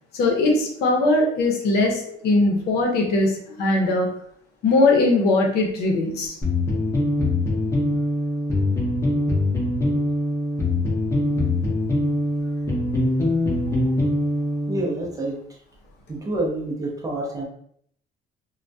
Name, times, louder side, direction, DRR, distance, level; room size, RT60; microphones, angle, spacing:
voice 1, 0.1-4.1 4.6-6.3, left 2 dB, 75° left, 0 dB, 0.7 m, -20 dB
sound 1, 6.4-14.9, left 1 dB, 15° left, 0.7 m, -23 dB
voice 2, 14.7-15.6 16.1-17.5, right 2 dB, 20° right, -1 dB, 0.6 m, -28 dB
2.2 x 2.1 x 2.6 m, 0.65 s
cardioid pair, 110°, 17 cm